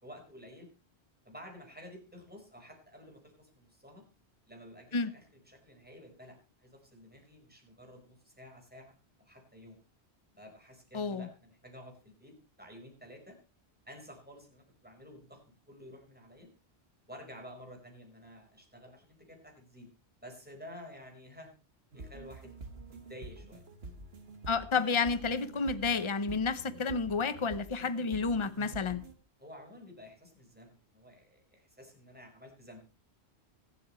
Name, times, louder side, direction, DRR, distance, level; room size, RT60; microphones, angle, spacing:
voice 1, 0.0-0.7 1.2-4.0 4.5-8.9 9.2-9.8 10.3-13.3 13.8-15.4 15.7-16.5 17.1-19.9 20.2-21.5 21.9-23.6 29.4-32.8, equal, 10° right, 4.6 m, -51 dB
voice 2, 10.9-11.3 24.5-29.0, left 4 dB, 30° left, 0.9 m, -30 dB
sound 1, 21.9-29.1, right 2 dB, 65° right, 1.8 m, -48 dB
25.0 x 8.3 x 3.2 m
omnidirectional pair, 1.1 m